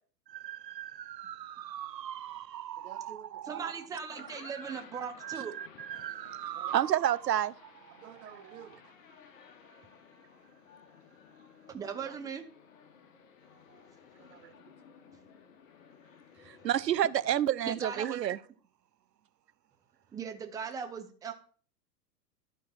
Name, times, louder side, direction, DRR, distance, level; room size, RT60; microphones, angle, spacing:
voice 1, 0.3-3.7 5.2-7.5 8.5-8.6 16.5-18.4, right 11 dB, 80° right, 0.6 m, -32 dB
voice 2, 2.8-3.7 4.2-4.3 6.5-6.7 7.9-8.8 11.9-12.2 14.2-15.0, right 8 dB, 60° right, 1.2 m, -51 dB
voice 3, 3.4-5.6 11.7-12.4 17.7-18.3 20.1-21.3, right 6 dB, 10° right, 0.5 m, -38 dB
sound 1, 3.9-17.3, left 6 dB, 50° left, 1.3 m, -56 dB
12.0 x 4.5 x 4.5 m
figure-of-eight pair, 105°, 49 cm